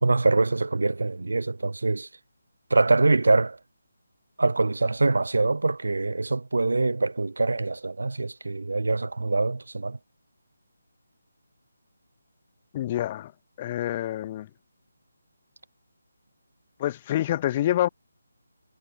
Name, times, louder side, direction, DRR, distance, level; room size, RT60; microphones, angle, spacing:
voice 1, 0.0-2.1 2.7-3.6 4.4-10.0, right 3 dB, 80° right, 2.1 m, -24 dB
voice 2, 12.7-13.3 13.6-14.5 16.8-17.9, left 13 dB, 25° left, 2.9 m, -27 dB
figure-of-eight pair, 165°, 0 cm